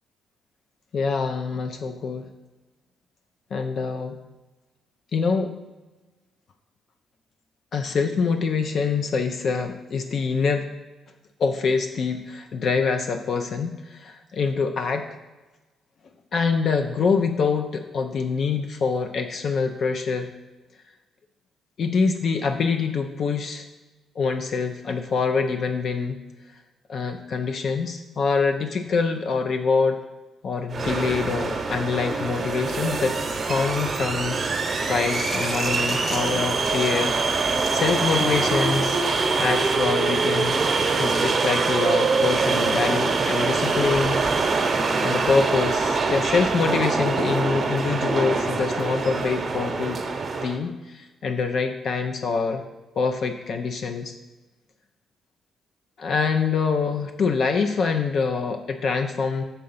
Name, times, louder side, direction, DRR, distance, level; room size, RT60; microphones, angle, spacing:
voice 1, 0.9-2.3 3.5-4.2 5.1-5.5 7.7-10.7 11.4-15.1 16.3-20.3 21.8-23.7 24.2-26.2 26.9-30.0 30.4-33.2 33.5-34.4 34.9-37.1 37.4-39.0 39.4-40.6 41.0-44.2 45.0-50.0 50.4-52.6 53.0-54.2 56.0-59.4, left 5 dB, 60° left, 6 dB, 0.5 m, -25 dB
sound 1, 30.7-50.6, right 4 dB, 40° right, 0.8 m, -24 dB
sound 2, 34.5-39.8, left 1 dB, 40° left, 1.1 m, -37 dB
6.8 x 3.8 x 5.4 m, 1.2 s
cardioid pair, 70°, 0 cm